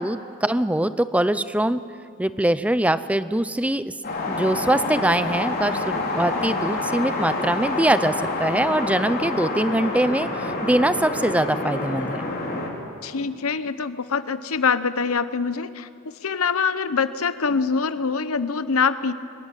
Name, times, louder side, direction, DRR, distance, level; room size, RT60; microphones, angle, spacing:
voice 1, 0.0-1.8 2.2-3.8 4.3-8.1 8.4-12.3, right 1 dB, 5° right, 13 dB, 0.6 m, -22 dB
sound 1, 4.0-12.7, left 2 dB, 45° left, 4.2 m, -27 dB
voice 2, 13.0-15.9 16.2-19.1, left 5 dB, 70° left, 13 dB, 0.9 m, -24 dB
24.5 x 22.0 x 9.0 m, 2.5 s
head